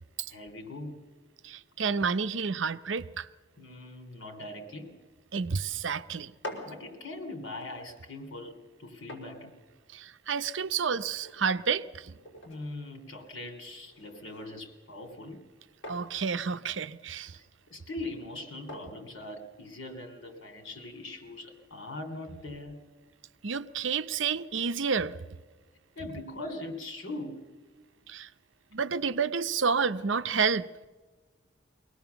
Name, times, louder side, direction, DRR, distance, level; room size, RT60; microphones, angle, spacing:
voice 1, 0.3-1.0 3.6-5.0 6.6-9.5 12.4-15.4 17.3-22.8 25.9-27.5, left 2 dB, 85° left, 3.3 m, -41 dB
voice 2, 1.4-3.3 5.3-6.3 9.9-12.1 15.9-17.3 23.4-25.2 28.1-28.3 28.7-30.7, right 5 dB, 70° right, 0.7 m, -30 dB
sound 1, 6.2-20.0, left 1 dB, 65° left, 5.3 m, -50 dB
23.5 x 18.5 x 7.0 m
head